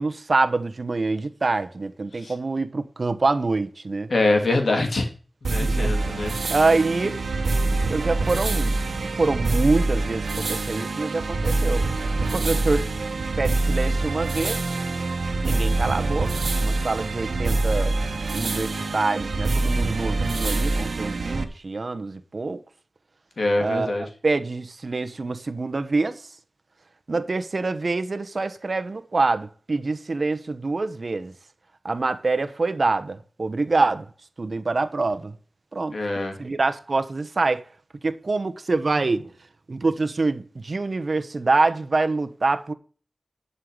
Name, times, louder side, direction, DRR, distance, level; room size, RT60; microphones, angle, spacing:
voice 1, 0.0-4.1 5.6-5.9 6.5-7.2 7.9-8.8 9.2-11.8 12.3-12.8 13.4-14.6 15.4-18.0 18.3-22.6 23.6-26.2 27.1-31.3 31.8-34.1 34.4-35.3 35.7-35.9 36.4-37.7 38.0-39.3 39.7-42.7, right 3 dB, 60° right, 1.1 m, -25 dB
voice 2, 4.1-5.1 5.4-6.3 23.4-24.0 35.9-36.4, left 2 dB, 75° left, 3.0 m, -24 dB
sound 1, 5.4-21.4, right 2 dB, 90° right, 1.4 m, -25 dB
11.5 x 5.7 x 6.6 m
wide cardioid pair, 50°, 0 cm